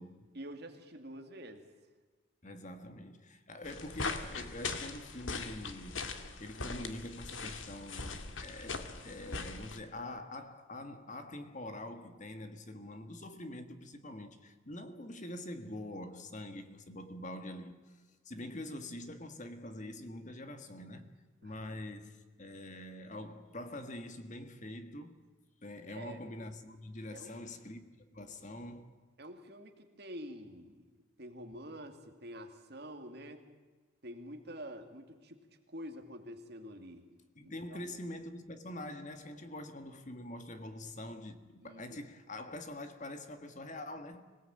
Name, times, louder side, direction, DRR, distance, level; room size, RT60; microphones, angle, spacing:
voice 1, 0.3-1.6 21.4-21.8 25.9-26.2 27.1-27.4 29.2-30.8 31.2-33.4 34.0-35.4 35.7-37.0 37.4-37.9 41.6-42.0, equal, 55° right, 2.7 m, -47 dB
voice 2, 2.4-6.1 6.4-17.9 18.2-21.1 21.4-25.2 25.6-29.0 37.3-44.2, left 1 dB, 35° left, 1.7 m, -45 dB
sound 1, 3.6-9.8, left 4 dB, 75° left, 1.9 m, -41 dB
25.5 x 18.5 x 9.0 m
head